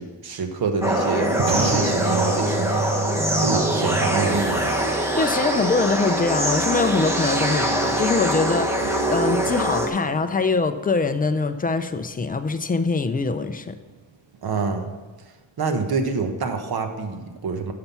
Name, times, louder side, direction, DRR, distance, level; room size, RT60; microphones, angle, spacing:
voice 1, 0.0-2.9 3.4-4.7 14.4-15.0 15.6-17.7, right 4 dB, 50° right, 6 dB, 1.2 m, -26 dB
sound 1, 0.8-9.9, right 1 dB, 5° right, 1.0 m, -23 dB
Thunder, 1.4-15.4, right 5 dB, 75° right, 1.2 m, -38 dB
voice 2, 5.1-13.7, left 4 dB, 20° left, 10 dB, 0.4 m, -23 dB
9.7 x 5.8 x 6.9 m, 1.3 s
wide cardioid pair, 160°, 46 cm